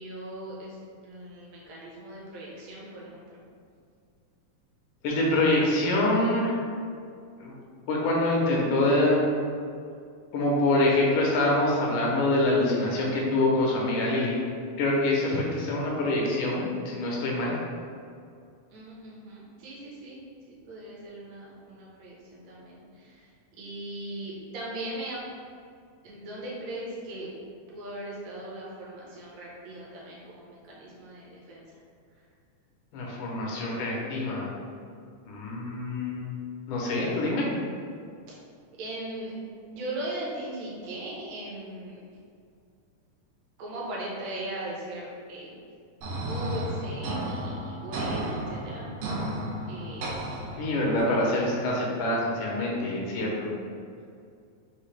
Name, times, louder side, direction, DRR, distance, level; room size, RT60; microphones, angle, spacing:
voice 1, 0.0-3.4 18.7-20.2 20.7-25.2 26.0-27.3 27.7-31.8 38.3-38.4 38.8-39.3 39.7-42.0 43.6-45.5 46.2-48.9 49.7-50.1, right 1 dB, 65° right, -5 dB, 1.9 m, -39 dB
voice 2, 5.0-6.6 7.4-7.6 7.9-9.2 10.3-14.3 14.8-17.6 32.9-34.5 35.3-36.3 36.7-37.5 50.6-53.5, left 2 dB, 80° left, -3 dB, 2.2 m, -25 dB
sound 1, 46.0-51.0, right 1 dB, 90° right, 2.6 m, -33 dB
5.8 x 2.7 x 3.2 m, 2.3 s
omnidirectional pair, 3.7 m